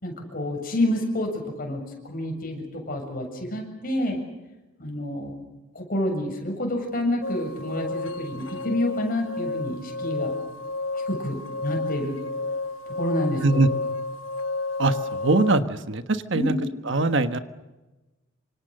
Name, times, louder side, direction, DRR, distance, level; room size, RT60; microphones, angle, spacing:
voice 1, 0.0-4.2 4.8-5.3 5.7-10.3 11.1-12.2 12.9-13.6 16.3-16.6, left 1 dB, 45° left, 3 dB, 7.3 m, -28 dB
sound 1, 7.2-15.6, left 3 dB, 70° left, 1.1 m, -31 dB
voice 2, 15.2-16.6 16.9-17.4, right 2 dB, 65° right, 10 dB, 1.4 m, -22 dB
28.0 x 26.0 x 6.7 m, 1.1 s
head